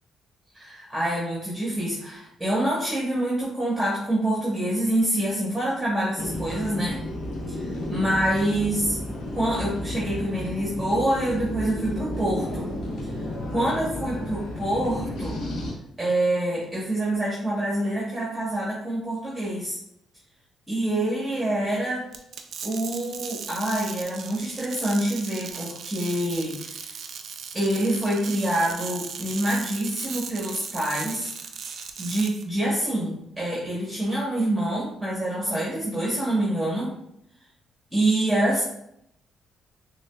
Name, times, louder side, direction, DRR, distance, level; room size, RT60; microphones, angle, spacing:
voice 1, 0.5-7.0 7.6-9.0 9.3-12.7 13.5-15.4 16.0-19.8 20.7-22.0 22.6-27.0 27.5-31.3 31.7-36.9 37.9-38.6, right 1 dB, 10° right, -6 dB, 1.1 m, -26 dB
sound 1, 6.2-15.7, left 1 dB, 75° left, 0.8 m, -32 dB
sound 2, 22.1-32.4, right 6 dB, 65° right, 0.4 m, -37 dB
5.8 x 2.2 x 2.3 m, 0.76 s
cardioid pair, 90°, 0 cm